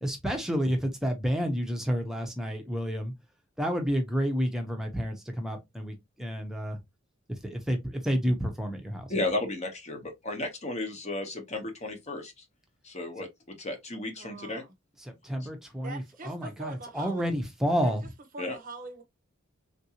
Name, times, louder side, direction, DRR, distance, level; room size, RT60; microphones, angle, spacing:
voice 1, 0.0-3.1 3.6-6.8 7.4-9.1 15.1-18.1, equal, ahead, 0.7 m, -30 dB
voice 2, 9.1-12.3 12.8-13.3 13.6-14.6 15.4-15.5 18.4-18.6, left 2 dB, 30° left, 0.8 m, -33 dB
voice 3, 14.2-14.7 15.8-17.3 17.8-17.9 18.3-19.0, right 3 dB, 40° right, 0.7 m, -42 dB
3.5 x 2.6 x 2.8 m
head